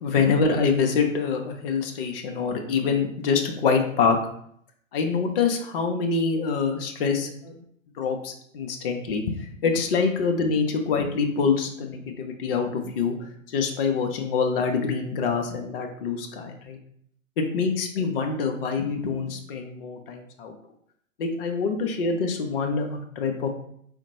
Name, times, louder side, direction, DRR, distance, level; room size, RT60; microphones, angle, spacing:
voice 1, 0.0-4.2 4.9-7.5 8.0-9.3 9.6-16.8 17.4-20.6 21.2-23.5, left 5 dB, 45° left, 3 dB, 0.4 m, -25 dB
3.8 x 2.1 x 2.7 m, 0.68 s
figure-of-eight pair, 115°, 42 cm